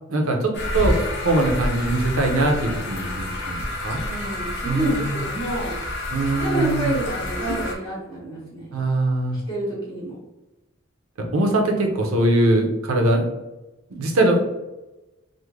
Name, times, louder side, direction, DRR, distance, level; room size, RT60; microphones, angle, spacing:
voice 1, 0.1-3.6 3.8-4.0 4.6-5.1 6.1-6.9 8.7-9.4 11.3-13.3 13.9-14.4, right 2 dB, 80° right, 2 dB, 0.6 m, -21 dB
sound 1, 0.5-7.8, left 1 dB, 50° left, 0.6 m, -29 dB
voice 2, 3.9-5.7 6.4-8.7 9.5-10.2, right 1 dB, 20° left, -7 dB, 1.1 m, -28 dB
3.5 x 2.1 x 3.1 m, 1.0 s
head